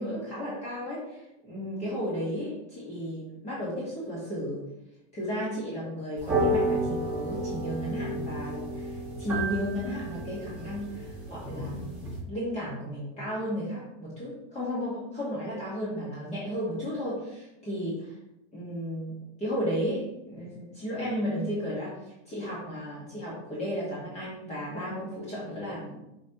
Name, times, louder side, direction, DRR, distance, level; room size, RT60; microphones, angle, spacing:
voice 1, 0.0-4.6 5.1-11.8 12.3-18.1 18.5-19.1 19.4-26.0, equal, 20° left, -8 dB, 1.8 m, -34 dB
sound 1, 6.2-12.2, right 1 dB, 5° right, 1.7 m, -31 dB
7.1 x 4.4 x 3.0 m, 0.91 s
supercardioid pair, 160°, 35 cm